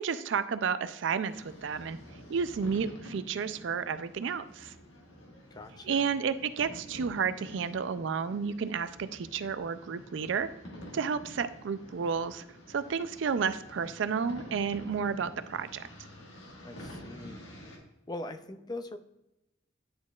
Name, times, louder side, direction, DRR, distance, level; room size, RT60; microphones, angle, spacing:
voice 1, 0.0-2.0 2.3-4.7 5.8-10.5 10.9-15.9, right 6 dB, 70° right, 12 dB, 0.4 m, -31 dB
sound 1, 1.3-17.8, equal, 85° left, 1.6 m, -49 dB
voice 2, 5.5-6.1 16.6-17.4 18.1-19.0, left 2 dB, 20° left, 9 dB, 0.4 m, -41 dB
10.0 x 4.4 x 2.3 m, 0.89 s
head